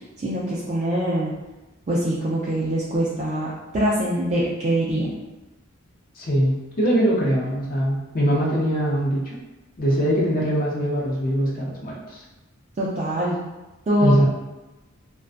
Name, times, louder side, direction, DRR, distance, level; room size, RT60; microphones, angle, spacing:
voice 1, 0.2-1.3 1.9-3.5 3.7-5.1 12.8-13.4 13.9-14.3, right 1 dB, 35° right, -7 dB, 0.4 m, -23 dB
voice 2, 6.2-9.4 9.8-12.2 14.0-14.3, equal, 45° left, -3 dB, 0.6 m, -22 dB
2.4 x 2.2 x 2.4 m, 1.1 s
head